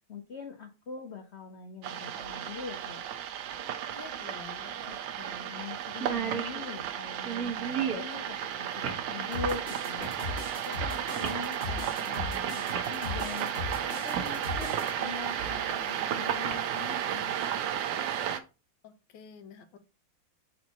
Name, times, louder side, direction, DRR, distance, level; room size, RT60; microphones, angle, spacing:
voice 1, 0.1-3.1 4.8-17.4, left 4 dB, 85° left, 5 dB, 0.5 m, -43 dB
sound 1, 1.8-18.4, right 9 dB, 70° right, 1.3 m, -33 dB
sound 2, 2.2-2.3 4.1-4.2 4.5-4.6 5.1-5.3 5.6-5.7 5.9-8.1 8.8-9.1 10.0-10.2 11.2-11.4 12.3-12.4 12.7-12.9 14.2-14.3 14.7-15.7 16.3-16.5, right 7 dB, 50° right, 1.4 m, -35 dB
voice 2, 3.9-4.8 18.8-19.8, left 6 dB, 70° left, 9 dB, 1.3 m, -48 dB
sound 3, 9.3-14.9, left 3 dB, 30° left, 1.3 m, -38 dB
4.4 x 4.0 x 5.4 m, 0.31 s
omnidirectional pair, 2.2 m